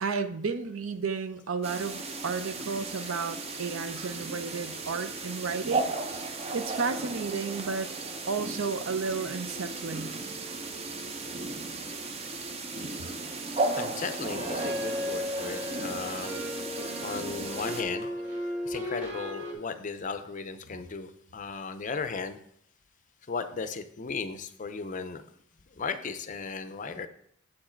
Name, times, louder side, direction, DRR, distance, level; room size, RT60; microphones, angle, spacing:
voice 1, 0.0-7.9 8.3-10.1, right 4 dB, 75° right, 10 dB, 0.6 m, -33 dB
sound 1, 1.6-17.8, right 3 dB, 30° right, 0.5 m, -35 dB
voice 2, 13.7-16.4 17.0-22.4 23.3-25.2 25.7-27.1, left 4 dB, 35° left, 11 dB, 0.5 m, -36 dB
sound 2, 14.3-19.5, left 1 dB, 55° right, 1.7 m, -35 dB
7.4 x 4.7 x 4.4 m, 0.69 s
head